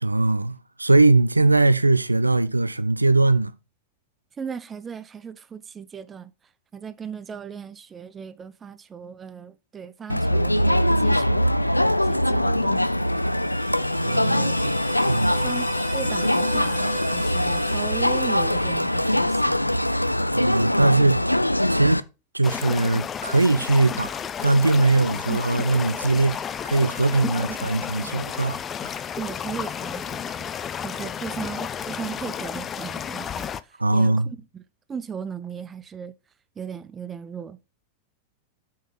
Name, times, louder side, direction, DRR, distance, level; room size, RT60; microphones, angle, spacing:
voice 1, 0.0-3.5 14.0-14.7 15.1-15.5 20.3-21.2 21.7-22.0 22.3-26.4 26.6-28.6 28.8-29.0 33.8-34.3, right 2 dB, 85° right, 0.4 m, -21 dB
voice 2, 4.4-6.3 6.7-11.6 12.0-13.0 14.0-14.6 15.4-19.5 25.3-25.4 27.5-27.7 29.2-30.5 30.8-34.6 34.9-36.1 36.6-37.6, right 7 dB, 20° right, 0.7 m, -37 dB
Crowd, 10.1-22.0, left 1 dB, 85° left, 0.4 m, -22 dB
sound 1, 12.6-19.7, left 1 dB, 55° left, 2.7 m, -39 dB
sound 2, 22.4-33.6, left 8 dB, 25° left, 0.5 m, -32 dB
8.1 x 4.8 x 5.5 m
figure-of-eight pair, 90°, 0 cm